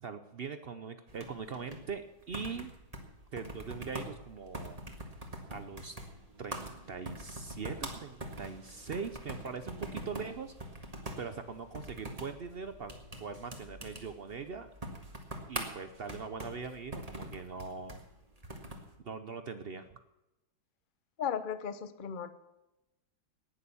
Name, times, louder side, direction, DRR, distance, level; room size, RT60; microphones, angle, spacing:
voice 1, 0.0-2.7 3.3-4.8 5.5-6.0 6.4-10.5 11.2-12.9 13.2-14.7 15.5-18.0 19.0-19.9, right 5 dB, 80° right, 10 dB, 0.5 m, -41 dB
Teclado ordenador, 1.1-18.9, right 1 dB, 20° right, 1.7 m, -44 dB
voice 2, 21.2-22.3, left 7 dB, 45° left, 12 dB, 0.6 m, -35 dB
18.5 x 6.9 x 7.0 m, 0.96 s
omnidirectional pair, 2.1 m